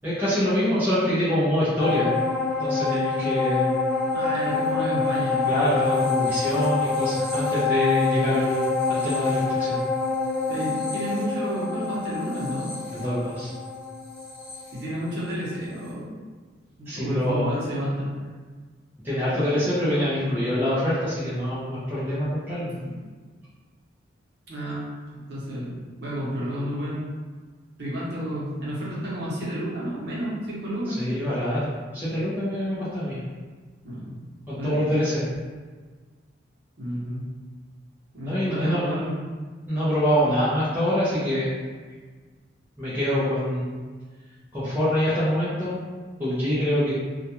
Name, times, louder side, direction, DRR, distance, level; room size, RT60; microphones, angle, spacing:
voice 1, 0.0-2.1 2.6-3.7 5.5-9.8 12.9-13.5 16.9-17.5 19.0-22.8 30.9-33.2 34.5-35.2 38.2-38.8 39.7-41.5 42.8-43.7 44.5-45.8 46.2-46.9, equal, 10° right, -11 dB, 0.5 m, -25 dB
sound 1, 1.8-15.5 15.9-16.0, left 4 dB, 65° left, 0.9 m, -26 dB
voice 2, 4.1-5.5 8.1-8.4 10.5-12.7 14.7-16.1 16.8-18.1 22.8-22.9 24.5-24.9 25.1-27.0 27.8-31.0 33.8-34.2 34.6-34.9 36.8-37.2 38.1-39.2, equal, 60° right, -7 dB, 0.8 m, -31 dB
2.3 x 2.2 x 2.8 m, 1.4 s
head